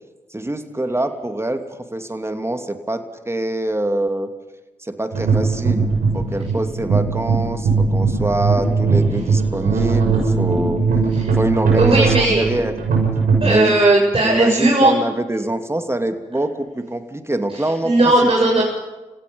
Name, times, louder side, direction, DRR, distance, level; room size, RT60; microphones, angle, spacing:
voice 1, 0.3-4.3 4.8-5.9 6.1-10.8 11.3-12.8 13.4-13.8 14.2-18.0, right 1 dB, 20° right, 6 dB, 2.9 m, -24 dB
sound 1, 5.1-13.5, right 4 dB, 90° right, 6.3 m, -19 dB
voice 2, 11.2-12.4 13.4-14.9 17.8-18.6, right 2 dB, 40° right, -4 dB, 7.4 m, -16 dB
29.5 x 16.5 x 5.5 m, 1.2 s
supercardioid pair, 40°, 14 cm